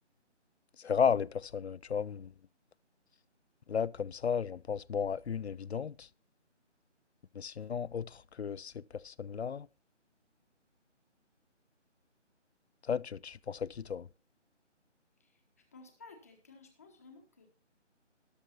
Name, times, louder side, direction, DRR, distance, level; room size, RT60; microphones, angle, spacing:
voice 1, 0.8-2.3 3.7-5.9 7.4-8.1 8.4-8.7 9.0-9.7 12.9-14.0, left 7 dB, 60° left, 0.5 m, -33 dB
voice 2, 15.7-17.5, left 3 dB, 15° left, 1.0 m, -55 dB
13.5 x 11.5 x 2.9 m
figure-of-eight pair, 165°, 37 cm